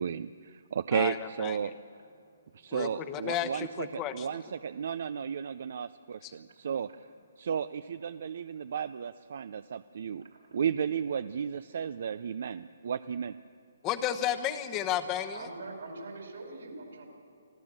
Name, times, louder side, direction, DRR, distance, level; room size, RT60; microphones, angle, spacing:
voice 1, 0.0-1.7 2.5-6.9 7.4-10.2 10.5-13.3, right 7 dB, 60° right, 13 dB, 0.5 m, -33 dB
voice 2, 0.9-1.7 2.7-4.3 6.2-6.3 13.8-15.5, left 10 dB, 20° left, 11 dB, 1.0 m, -33 dB
voice 3, 15.3-17.1, right 3 dB, 75° right, 3 dB, 5.3 m, -44 dB
26.0 x 13.5 x 7.5 m, 2.3 s
hypercardioid pair, 160°, 0 cm